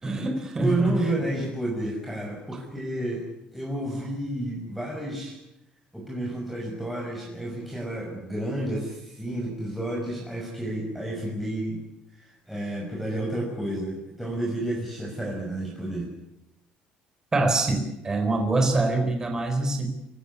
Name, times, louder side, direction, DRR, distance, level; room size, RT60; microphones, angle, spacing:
voice 1, 0.0-0.9 17.3-19.9, right 2 dB, 20° right, 4 dB, 4.2 m, -24 dB
voice 2, 0.6-5.4 5.9-11.8 12.1-16.1, right 1 dB, ahead, -3 dB, 5.9 m, -31 dB
27.5 x 16.0 x 9.6 m, 0.86 s
cardioid pair, 135°, 3 cm